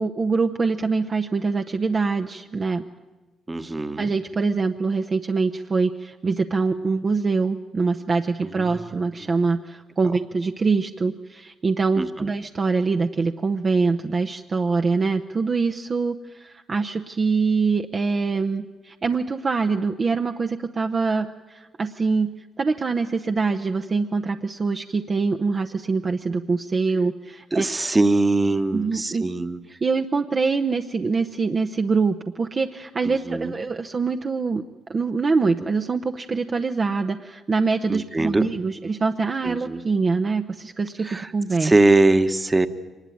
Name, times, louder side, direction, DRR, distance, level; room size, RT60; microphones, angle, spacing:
voice 1, 0.0-2.8 4.0-22.3 22.6-27.6 28.7-29.2 29.8-34.6 34.9-41.7, right 4 dB, 35° right, 5 dB, 0.8 m, -24 dB
voice 2, 3.5-4.1 8.6-8.9 12.0-12.3 27.5-29.6 33.0-33.5 37.9-38.5 39.4-39.8 41.0-41.3 41.6-42.7, right 2 dB, 20° right, 9 dB, 1.2 m, -21 dB
23.5 x 20.0 x 9.3 m, 1.2 s
cardioid pair, 90°, 0 cm